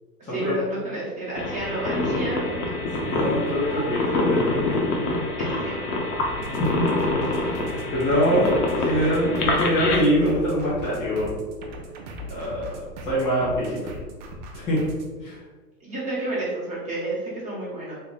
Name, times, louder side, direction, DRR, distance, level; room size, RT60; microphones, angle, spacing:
voice 1, 0.2-2.6 3.5-4.2 5.4-5.8 15.8-18.0, right 2 dB, 15° right, -7 dB, 1.0 m, -31 dB
sound 1, 1.3-10.0, left 2 dB, 70° left, 1.0 m, -26 dB
voice 2, 3.0-4.7 6.6-6.9 7.9-11.3 12.3-12.8 13.1-13.9 14.5-14.8 15.2-15.4, equal, 10° left, -9 dB, 0.6 m, -24 dB
sound 2, 6.2-15.1, left 1 dB, 30° right, 0.5 m, -39 dB
3.5 x 2.2 x 3.9 m, 1.3 s
hypercardioid pair, 125°, 48 cm